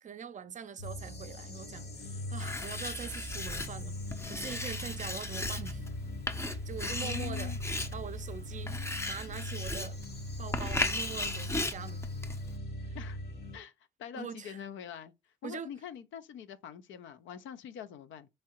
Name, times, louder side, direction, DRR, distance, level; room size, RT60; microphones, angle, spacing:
voice 1, 0.0-5.8 6.4-8.8 9.1-10.0 10.4-12.1 12.8-13.0 14.1-14.6 15.4-15.7, right 7 dB, 40° right, 0.5 m, -43 dB
sound 1, 0.8-13.6, left 1 dB, 55° left, 1.2 m, -40 dB
Writing, 2.4-12.6, left 2 dB, 15° left, 0.5 m, -37 dB
voice 2, 7.0-7.6 12.9-13.2 13.5-13.7 14.0-15.1 15.4-18.3, left 8 dB, 75° left, 0.6 m, -44 dB
3.6 x 3.1 x 2.9 m
cardioid pair, 90°, 20 cm